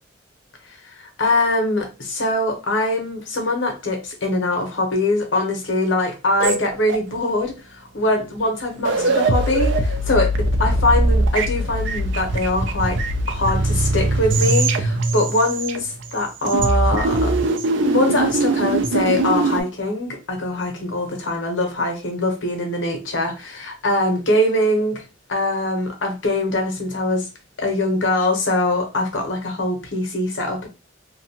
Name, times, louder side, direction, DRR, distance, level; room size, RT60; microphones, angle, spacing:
voice 1, 0.7-13.0 13.3-17.4 17.8-25.0 25.3-27.3 27.6-30.7, left 1 dB, 90° left, 0.8 m, -22 dB
sound 1, 6.4-7.3 8.4-8.5 8.7-16.1 16.4-19.6, right 2 dB, 75° right, 0.4 m, -21 dB
2.6 x 2.3 x 2.8 m
head